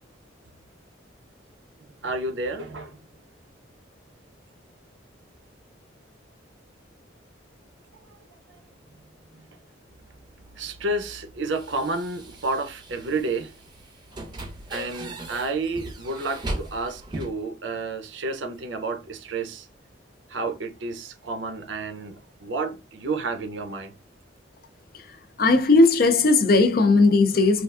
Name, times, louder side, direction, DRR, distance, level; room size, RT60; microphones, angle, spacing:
voice 1, 1.8-3.0 8.5-8.6 10.5-13.5 14.7-19.7 20.3-23.9, right 3 dB, 70° right, 0.6 m, -30 dB
sound 1, 9.9-17.3, right 1 dB, 25° right, 0.6 m, -39 dB
voice 2, 25.4-27.6, left 3 dB, 50° left, 0.5 m, -17 dB
3.3 x 2.4 x 2.4 m
head